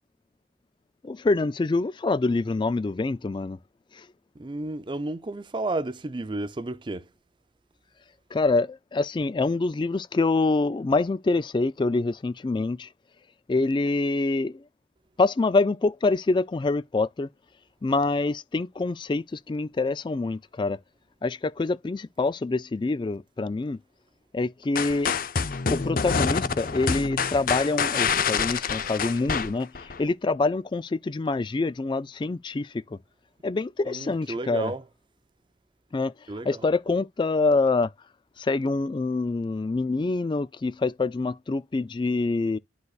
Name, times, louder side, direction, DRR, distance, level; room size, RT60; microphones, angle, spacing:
voice 1, 1.0-3.6 3.9-4.0 8.3-12.9 13.5-14.6 15.2-17.3 17.8-20.8 21.2-23.8 24.3-25.1 25.7-33.0 33.4-34.7 35.9-36.1 36.4-37.9 38.4-42.6, left 3 dB, 25° left, 0.3 m, -26 dB
voice 2, 4.4-7.1 33.9-34.8 36.3-36.7, right 2 dB, 25° right, 0.5 m, -32 dB
sound 1, 24.8-30.0, left 5 dB, 50° left, 0.7 m, -27 dB
11.5 x 4.0 x 2.4 m
head